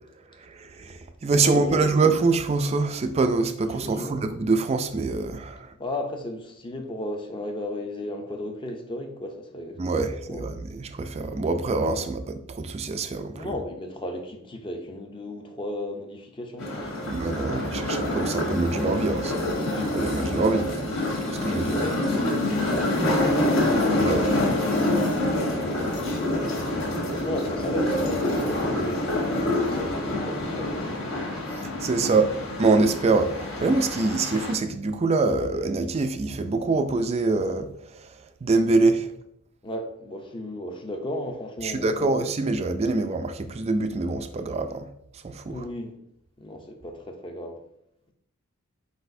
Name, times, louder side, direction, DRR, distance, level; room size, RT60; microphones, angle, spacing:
voice 1, 0.4-5.7 9.8-13.5 17.1-20.9 21.3-21.8 24.0-24.4 31.8-32.3 32.6-38.1 38.4-39.1 41.6-44.9 45.2-45.6, right 3 dB, 30° right, 0.3 m, -25 dB
voice 2, 1.4-1.9 3.7-4.2 5.8-9.8 10.1-10.5 13.3-17.1 21.7-22.1 22.4-24.5 25.1-31.1 32.0-32.1 39.6-42.2 45.5-46.0 46.4-47.6, left 1 dB, 20° left, 0.6 m, -35 dB
sound 1, 16.6-34.5, left 1 dB, 60° left, 1.2 m, -26 dB
4.8 x 4.1 x 2.6 m
head